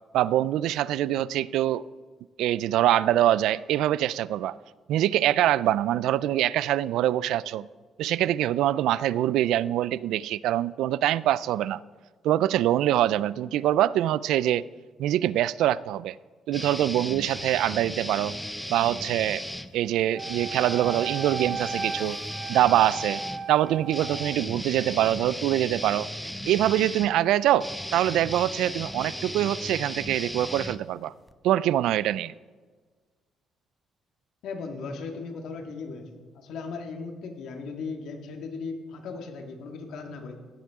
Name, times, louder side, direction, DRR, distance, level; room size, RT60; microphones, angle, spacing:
voice 1, 0.1-1.8 2.4-4.6 4.9-7.7 8.0-11.8 12.2-14.6 15.0-16.2 16.5-18.4 18.7-19.4 19.7-22.2 22.5-23.2 23.5-26.1 26.5-31.1 31.4-32.3, right 13 dB, 85° right, 19 dB, 0.3 m, -24 dB
sound 1, 16.5-19.7 20.2-31.3, equal, 5° left, 0.6 m, -36 dB
Wind instrument woodwind instrument, 20.1-24.4, right 5 dB, 40° right, 1.0 m, -36 dB
voice 2, 34.4-40.4, left 4 dB, 75° left, 4 dB, 1.8 m, -37 dB
16.0 x 11.0 x 3.6 m, 1.4 s
cardioid pair, 120°, 0 cm